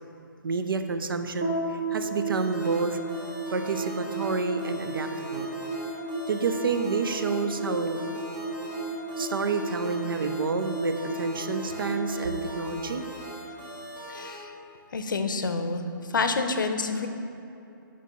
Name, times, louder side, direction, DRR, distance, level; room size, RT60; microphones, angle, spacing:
voice 1, 0.4-3.0 3.5-5.5 6.3-8.0 9.2-13.0, right 4 dB, 80° right, 8 dB, 0.5 m, -29 dB
sound 1, 1.4-13.9, right 2 dB, 25° right, 0.8 m, -34 dB
sound 2, 2.3-14.4, left 1 dB, 5° right, 1.4 m, -42 dB
voice 2, 14.1-14.5 14.9-15.8 16.1-17.1, left 4 dB, 65° left, 7 dB, 0.6 m, -28 dB
8.2 x 5.8 x 3.0 m, 2.8 s
hypercardioid pair, 180°, 12 cm